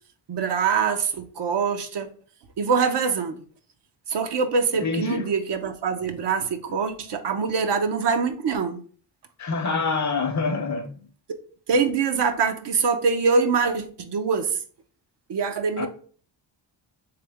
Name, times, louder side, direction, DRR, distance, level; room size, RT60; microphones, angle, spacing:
voice 1, 0.3-2.1 2.6-3.4 4.1-8.8 11.3-11.4 11.7-14.6 15.3-15.9, right 5 dB, 65° right, 0.7 m, -24 dB
voice 2, 4.8-5.3 9.4-10.9 15.8-15.9, left 4 dB, 40° left, 0.7 m, -26 dB
3.4 x 3.4 x 3.4 m
cardioid pair, 90°, 45 cm